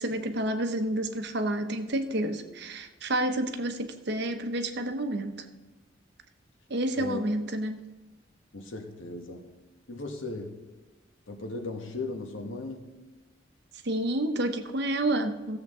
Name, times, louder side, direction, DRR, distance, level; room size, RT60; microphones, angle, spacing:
voice 1, 0.0-5.5 6.7-7.8 13.8-15.6, right 1 dB, 60° right, 7 dB, 0.9 m, -29 dB
voice 2, 8.5-9.4 9.9-10.6 11.3-12.9, left 2 dB, 85° left, 4 dB, 1.3 m, -36 dB
15.5 x 7.4 x 3.7 m, 1.1 s
head